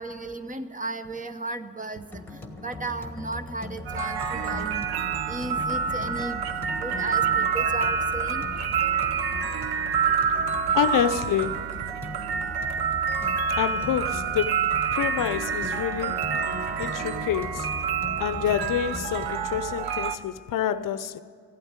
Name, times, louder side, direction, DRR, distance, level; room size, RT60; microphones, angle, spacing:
voice 1, 0.0-2.0 2.6-4.9 5.3-6.4 6.8-8.5, right 2 dB, 20° right, 0.7 m, -34 dB
sound 1, 2.1-19.8, left 2 dB, 5° left, 1.5 m, -40 dB
sound 2, 3.8-20.2, right 6 dB, 65° right, 1.0 m, -27 dB
voice 2, 10.7-11.7 13.6-14.6 14.9-16.2 16.8-17.7 18.2-21.2, left 10 dB, 50° left, 0.7 m, -27 dB
15.5 x 9.0 x 8.8 m
cardioid pair, 95°, 41 cm